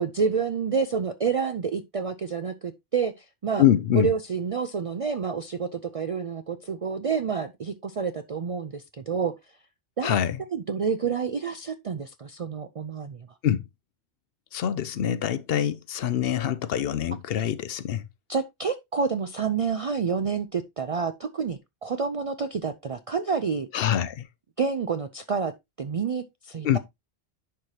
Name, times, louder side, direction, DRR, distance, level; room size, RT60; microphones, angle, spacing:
voice 1, 0.0-3.6 3.9-9.3 10.0-10.2 10.5-13.3 18.3-23.7 24.6-25.5 25.8-26.8, right 5 dB, 55° right, 0.3 m, -28 dB
voice 2, 3.6-4.1 10.0-10.4 13.4-13.6 14.5-18.0 23.7-24.3 26.6-26.8, left 10 dB, 65° left, 0.7 m, -24 dB
10.5 x 4.8 x 2.8 m
omnidirectional pair, 1.2 m